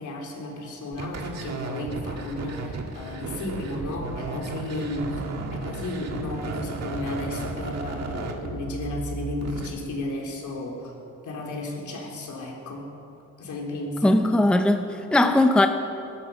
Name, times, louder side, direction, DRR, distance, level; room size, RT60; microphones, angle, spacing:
voice 1, 0.0-5.2 5.5-10.9 11.2-12.8 13.4-14.2, left 2 dB, 65° left, -1 dB, 3.3 m, -33 dB
sound 1, 0.9-9.7, right 3 dB, 55° right, 1.8 m, -34 dB
voice 2, 14.0-15.7, left 1 dB, 5° left, 6 dB, 0.7 m, -19 dB
20.5 x 12.0 x 5.4 m, 2.8 s
cardioid pair, 130°, 32 cm